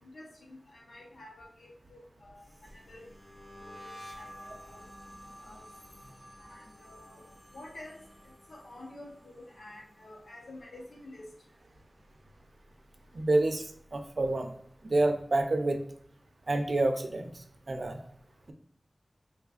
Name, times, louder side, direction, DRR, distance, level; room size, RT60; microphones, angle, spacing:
voice 1, 0.0-2.5 2.7-3.0 3.6-4.9 5.4-5.7 6.4-7.3 7.5-8.0 8.2-11.3, left 1 dB, 85° left, -1 dB, 0.9 m, -50 dB
sound 1, 2.4-11.6 11.8-12.3 12.6-14.1, equal, 20° left, 1.2 m, -52 dB
voice 2, 13.1-14.5 14.8-15.8 16.5-18.0, right 2 dB, 60° right, 5 dB, 0.5 m, -28 dB
4.7 x 3.1 x 2.4 m, 0.66 s
wide cardioid pair, 85°, 0 cm